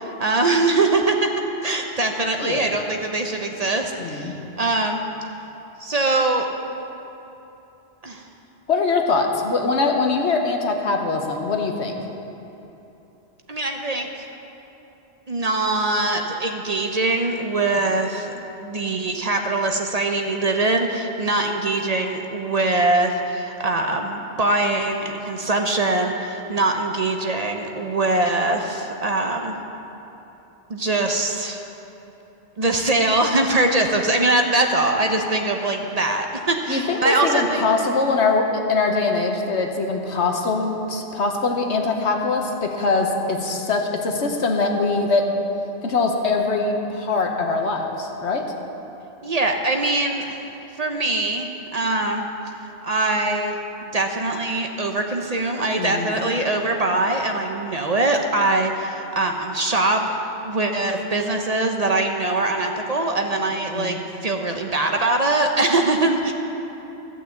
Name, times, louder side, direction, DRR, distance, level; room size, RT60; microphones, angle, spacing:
voice 1, 0.0-1.3 1.6-5.0 5.8-6.5 8.0-8.2 13.5-14.2 15.3-18.3 18.6-29.6 30.7-31.6 32.6-37.6 49.2-50.4 50.8-52.3 52.8-60.1 60.4-64.0 64.2-66.3, right 2 dB, 40° right, 3 dB, 0.7 m, -22 dB
voice 2, 4.0-4.3 8.7-11.9 36.7-45.3 45.8-48.4 55.8-56.2 63.7-64.0, left 3 dB, 85° left, 3 dB, 1.4 m, -22 dB
14.0 x 6.2 x 7.9 m, 3.0 s
omnidirectional pair, 1.1 m